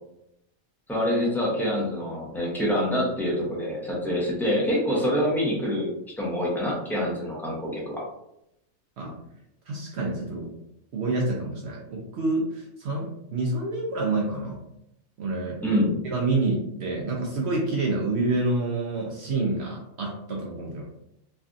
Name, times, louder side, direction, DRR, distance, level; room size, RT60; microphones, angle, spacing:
voice 1, 0.9-5.9 6.2-8.0 15.6-15.9, equal, ahead, -4 dB, 0.4 m, -26 dB
voice 2, 9.7-10.5 10.9-14.6 15.2-15.6 16.0-20.8, right 2 dB, 65° right, -2 dB, 0.7 m, -28 dB
3.2 x 2.3 x 2.5 m, 0.81 s
omnidirectional pair, 1.4 m